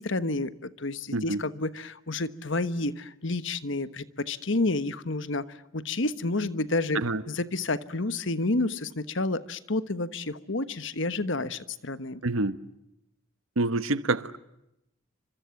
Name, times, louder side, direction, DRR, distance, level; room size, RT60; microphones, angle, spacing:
voice 1, 0.0-7.0 7.3-12.2, left 2 dB, 65° left, 1.3 m, -30 dB
voice 2, 12.2-12.6 13.6-14.4, right 2 dB, 75° right, 1.2 m, -27 dB
29.5 x 26.0 x 7.2 m
head